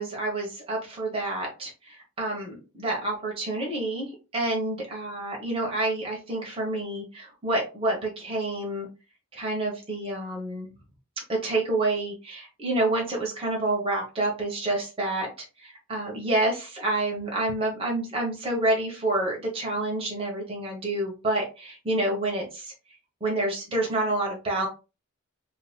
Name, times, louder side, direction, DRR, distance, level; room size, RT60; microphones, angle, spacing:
voice 1, 0.0-8.9 9.3-10.7 11.3-15.3 15.6-22.7 23.2-24.7, right 2 dB, 25° right, -2 dB, 1.0 m, -28 dB
3.8 x 2.8 x 2.2 m, 0.30 s
head